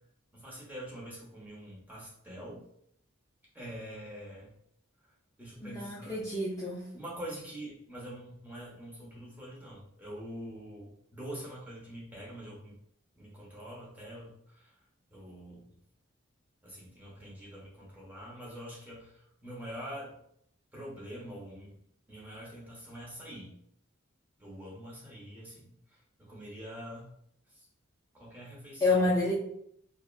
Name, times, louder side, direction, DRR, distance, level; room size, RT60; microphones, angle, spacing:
voice 1, 0.3-2.6 3.5-4.5 5.4-6.2 6.9-12.7 13.2-14.7 15.1-15.7 16.6-20.2 20.7-21.8 22.1-23.6 24.4-27.1 27.5-27.7 28.1-29.1, equal, 10° right, -5 dB, 0.7 m, -45 dB
voice 2, 5.6-6.9 28.8-29.3, left 2 dB, 15° left, -6 dB, 0.3 m, -28 dB
2.7 x 2.1 x 2.3 m, 0.71 s
head